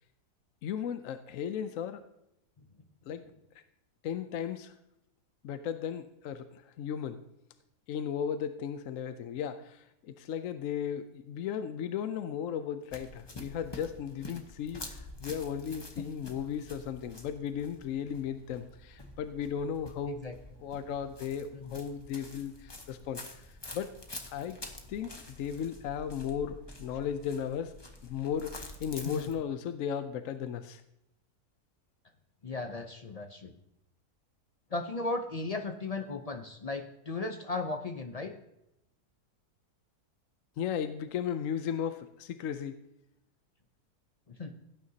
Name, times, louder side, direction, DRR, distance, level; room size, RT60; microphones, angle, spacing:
voice 1, 0.6-2.0 3.1-3.3 4.0-4.8 5.4-7.2 7.9-20.2 20.6-23.5 23.7-23.9 24.3-24.6 24.9-27.7 28.0-30.8 40.6-42.8, left 8 dB, 65° left, 10 dB, 0.9 m, -35 dB
sound 1, 12.9-29.3, left 2 dB, 20° left, 0.9 m, -48 dB
voice 2, 32.4-33.5 34.7-38.3 44.3-44.5, left 3 dB, 50° left, 6 dB, 0.4 m, -36 dB
17.0 x 9.4 x 2.8 m, 0.83 s
omnidirectional pair, 1.7 m